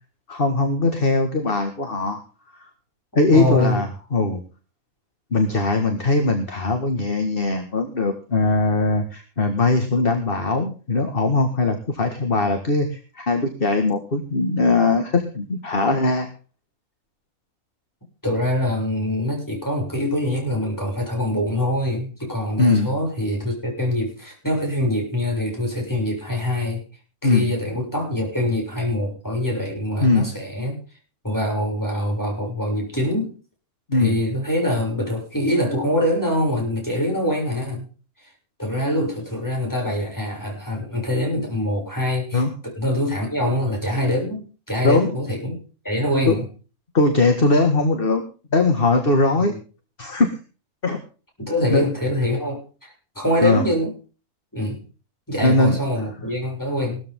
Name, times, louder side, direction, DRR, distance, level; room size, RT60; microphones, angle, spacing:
voice 1, 0.3-2.2 2.6-2.7 3.1-4.4 5.3-16.3 22.6-22.9 27.2-27.4 30.0-30.3 33.9-34.1 42.3-42.5 44.8-45.1 46.3-46.4 46.9-48.2 48.5-49.5 50.0-50.3 50.8-51.0 51.7-51.9 53.4-53.6 55.4-55.8, left 3 dB, 40° left, 6 dB, 2.0 m, -20 dB
voice 2, 3.3-3.8 18.2-26.8 27.2-30.8 31.2-33.3 33.9-37.9 38.6-46.5 49.4-49.6 51.4-53.9 54.5-54.8 55.3-57.0, left 1 dB, 10° left, -1 dB, 7.0 m, -24 dB
18.0 x 13.5 x 3.7 m, 0.37 s
omnidirectional pair, 1.5 m